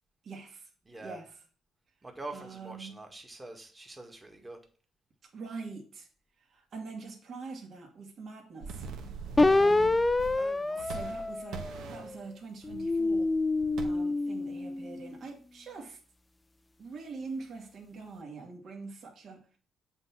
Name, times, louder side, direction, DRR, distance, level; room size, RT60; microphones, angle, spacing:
voice 1, 0.2-0.7 1.0-1.4 2.3-2.9 5.3-6.1 6.4-8.9 9.2-10.0 10.3-10.4 10.7-13.3 13.8-16.0 16.8-19.6, right 4 dB, 60° right, 1 dB, 2.2 m, -44 dB
voice 2, 0.8-1.2 2.0-4.6 10.3-11.0, right 2 dB, 20° right, 4 dB, 1.7 m, -45 dB
sound 1, 8.6-10.5 10.8-12.1 12.6-13.8, right 5 dB, 80° right, 1.1 m, -42 dB
sound 2, 9.4-12.1 12.6-15.1, left 2 dB, 20° left, 0.3 m, -27 dB
7.9 x 3.9 x 5.9 m, 0.41 s
cardioid pair, 90°, 0 cm